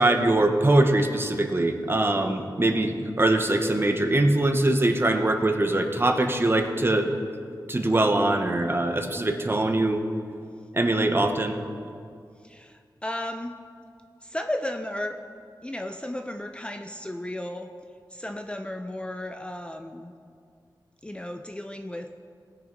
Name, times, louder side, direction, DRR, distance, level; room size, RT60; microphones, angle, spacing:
voice 1, 0.0-7.1 7.7-10.0 10.7-11.6, right 2 dB, 30° right, 5 dB, 1.0 m, -22 dB
voice 2, 12.4-13.5 14.2-15.2 15.6-17.7 18.1-20.1 21.0-22.1, left 1 dB, 15° left, 5 dB, 0.5 m, -34 dB
19.0 x 6.7 x 5.2 m, 2.3 s
wide cardioid pair, 95°, 8 cm